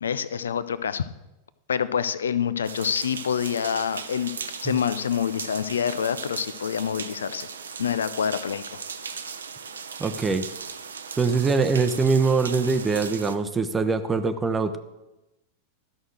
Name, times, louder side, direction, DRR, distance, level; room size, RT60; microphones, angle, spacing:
voice 1, 0.0-1.0 1.7-4.3 4.6-7.5 7.8-8.8, left 8 dB, 70° left, 15 dB, 0.5 m, -26 dB
sound 1, 2.6-13.4, right 6 dB, 70° right, 0.7 m, -38 dB
voice 2, 10.0-10.5 11.2-14.8, right 4 dB, 15° right, 10 dB, 0.7 m, -23 dB
13.0 x 6.3 x 6.3 m, 0.98 s
figure-of-eight pair, 90°, 0 cm